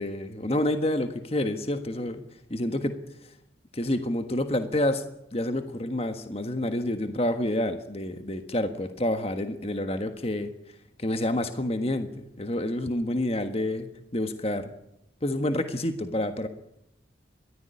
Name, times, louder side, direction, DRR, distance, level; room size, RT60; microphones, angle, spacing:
voice 1, 0.0-2.2 2.5-3.3 3.7-5.0 5.3-10.5 11.0-14.7 15.2-16.5, left 1 dB, 30° left, 8 dB, 1.4 m, -28 dB
22.0 x 14.5 x 9.8 m, 0.81 s
head